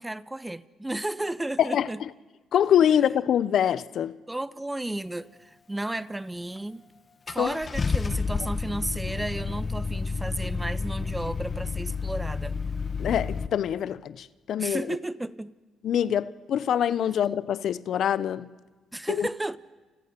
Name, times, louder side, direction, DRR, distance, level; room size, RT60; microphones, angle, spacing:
voice 1, 0.0-2.0 4.3-6.9 7.3-12.6 14.6-15.5 18.9-19.6, right 1 dB, 10° right, 1.0 m, -33 dB
voice 2, 1.6-2.1 2.5-4.2 7.4-7.6 13.0-15.0 15.8-18.5 19.1-19.3, left 9 dB, 70° left, 0.9 m, -25 dB
Car / Engine starting, 6.6-6.7 7.3-13.5, left 4 dB, 35° left, 1.4 m, -30 dB
29.5 x 29.5 x 6.9 m
cardioid pair, 90°, 0 cm